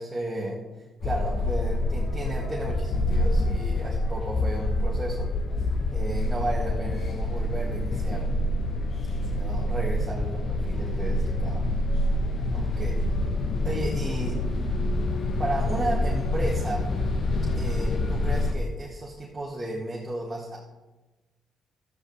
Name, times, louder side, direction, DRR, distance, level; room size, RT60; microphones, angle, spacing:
voice 1, 0.0-5.3 5.9-8.3 9.2-11.7 12.5-13.1 13.6-14.4 15.4-16.9 17.5-20.6, right 1 dB, 15° right, -4 dB, 2.0 m, -34 dB
sound 1, 1.0-18.5, left 1 dB, 50° left, 1.1 m, -27 dB
13.0 x 9.7 x 3.3 m, 1.1 s
cardioid pair, 90°, 0 cm